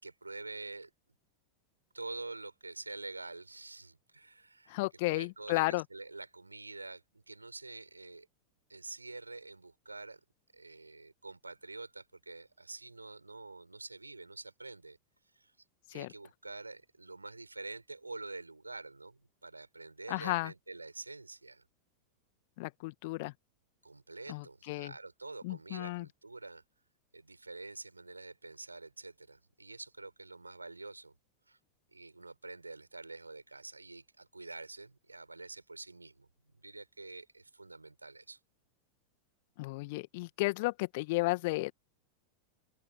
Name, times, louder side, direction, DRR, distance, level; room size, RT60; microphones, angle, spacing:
voice 1, 0.0-0.9 1.9-4.7 5.1-8.3 8.7-10.2 10.5-15.0 15.4-15.5 15.9-21.6 23.8-26.6 27.1-31.2 31.5-31.6 31.9-36.3 36.6-38.4, right 3 dB, 80° right, 7.1 m, -47 dB
voice 2, 4.7-5.8 15.9-16.1 20.1-20.5 22.6-23.3 24.3-24.9 25.4-26.1 39.6-41.7, left 23 dB, 50° left, 1.9 m, -33 dB
figure-of-eight pair, 90°, 0 cm